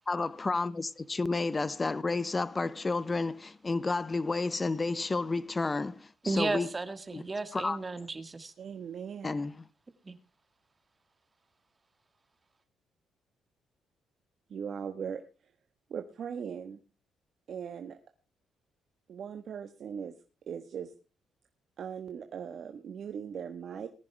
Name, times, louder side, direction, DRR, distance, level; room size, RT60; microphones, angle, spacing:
voice 1, 0.1-6.7 7.1-7.2 7.5-7.8 9.2-9.7, left 3 dB, 25° left, 0.9 m, -31 dB
voice 2, 6.2-8.5 10.0-10.2, right 3 dB, 25° right, 1.7 m, -34 dB
voice 3, 8.6-9.3 14.5-15.2 15.9-16.8 17.5-18.0 19.1-20.2 20.5-20.9 21.8-23.9, right 7 dB, 60° right, 1.3 m, -39 dB
19.5 x 10.5 x 3.4 m
cardioid pair, 90°, 0 cm